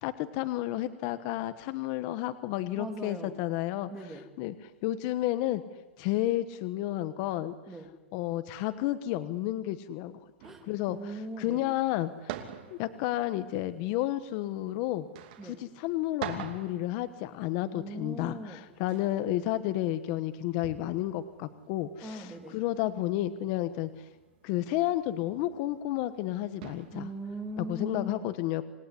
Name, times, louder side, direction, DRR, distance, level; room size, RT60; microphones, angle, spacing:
voice 1, 0.0-3.9 4.4-4.5 4.8-5.6 6.0-7.5 8.1-10.2 10.7-11.0 11.4-12.3 12.7-15.0 15.8-22.3 22.5-23.9 24.4-27.1 27.7-28.6, left 14 dB, 35° left, 11 dB, 1.3 m, -31 dB
voice 2, 2.7-3.4 3.9-4.3 7.7-7.9 10.4-11.7 15.4-15.6 17.6-18.6 22.0-22.6 26.9-28.3, right 1 dB, 5° right, 3 dB, 2.9 m, -40 dB
sound 1, 10.4-27.9, right 11 dB, 45° right, 2.8 m, -48 dB
27.0 x 18.5 x 10.0 m, 1.2 s
hypercardioid pair, 160°, 7 cm